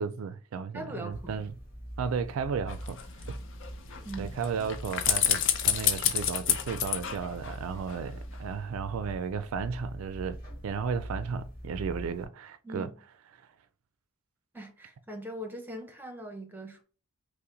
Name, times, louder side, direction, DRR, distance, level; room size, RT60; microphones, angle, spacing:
voice 1, 0.0-1.6 2.0-3.0 3.3-3.4 4.2-10.4 10.6-12.9, right 6 dB, 75° right, 0.3 m, -34 dB
voice 2, 0.7-1.4 4.0-4.4 12.6-12.9 14.5-16.8, right 1 dB, 10° right, 0.7 m, -41 dB
sound 1, 1.1-12.3, equal, 40° left, 2.1 m, -43 dB
sound 2, 2.7-8.0 8.3-8.4, left 10 dB, 60° left, 0.6 m, -30 dB
5.6 x 2.1 x 3.8 m
head